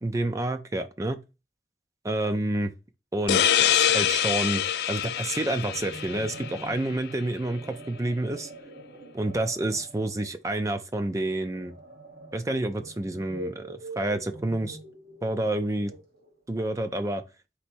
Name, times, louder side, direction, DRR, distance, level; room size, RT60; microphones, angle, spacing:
voice 1, 0.0-1.2 2.1-2.7 3.1-4.6 4.9-8.5 9.1-11.7 12.3-14.8 15.2-15.9 16.5-17.2, right 1 dB, 20° right, 0.4 m, -29 dB
sound 1, 3.3-6.7, left 10 dB, 65° left, 0.3 m, -25 dB
sound 2, 5.1-16.4, right 1 dB, 55° right, 1.1 m, -45 dB
4.2 x 2.6 x 4.4 m
head